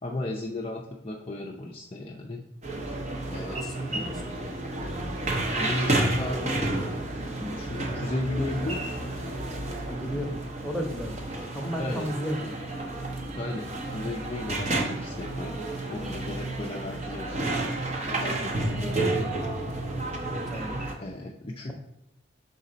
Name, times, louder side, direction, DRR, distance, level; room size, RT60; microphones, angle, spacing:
voice 1, 0.0-2.4 3.3-3.6 3.9-4.0 5.5-6.7 7.4-9.1 11.8-12.1 13.4-17.4 18.1-19.3 21.0-21.7, left 2 dB, 30° left, 0 dB, 0.5 m, -35 dB
sound 1, 2.6-20.9, right 2 dB, 35° right, 0.8 m, -31 dB
voice 2, 3.5-3.9 4.2-4.5 9.9-12.6 20.3-20.8, equal, ahead, -1 dB, 1.0 m, -34 dB
6.2 x 4.0 x 3.9 m, 0.84 s
head